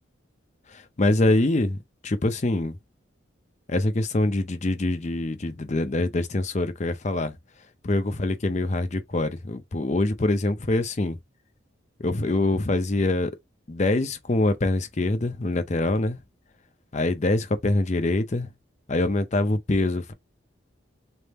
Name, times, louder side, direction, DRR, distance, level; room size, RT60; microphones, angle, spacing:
voice 1, 0.7-2.7 3.7-7.4 7.8-11.2 12.0-13.3 13.7-16.2 16.9-18.5 18.9-20.1, left 2 dB, 35° left, 0.6 m, -24 dB
3.4 x 2.6 x 4.2 m
head